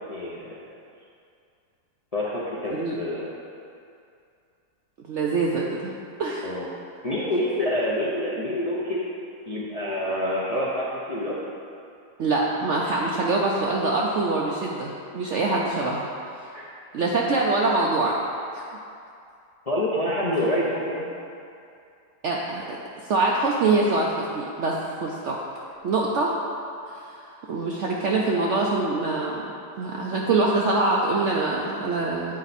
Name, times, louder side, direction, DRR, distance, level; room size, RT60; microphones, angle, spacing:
voice 1, 0.1-0.6 2.1-3.3 6.4-6.7 7.0-9.1 9.5-11.3 16.5-16.6 19.7-21.1, left 1 dB, 40° left, -7 dB, 0.5 m, -27 dB
voice 2, 5.0-5.9 6.2-6.5 12.2-16.1 16.9-18.1 18.5-18.6 22.2-22.8 23.1-26.3 26.9-27.0 27.5-29.5 29.8-32.4, right 3 dB, 65° right, -3 dB, 0.7 m, -24 dB
8.8 x 4.5 x 4.1 m, 2.5 s
omnidirectional pair, 1.8 m